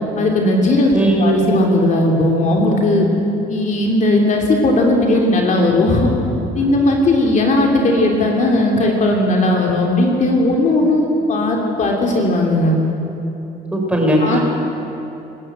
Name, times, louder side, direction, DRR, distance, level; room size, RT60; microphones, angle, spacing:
voice 1, 0.2-3.1 3.5-6.1 6.5-12.8 14.2-14.4, left 1 dB, 45° left, 0 dB, 3.0 m, -16 dB
voice 2, 0.9-1.3 13.7-14.4, right 1 dB, 5° right, 0 dB, 4.7 m, -17 dB
25.5 x 13.0 x 7.8 m, 2.9 s
cardioid pair, 110°, 17 cm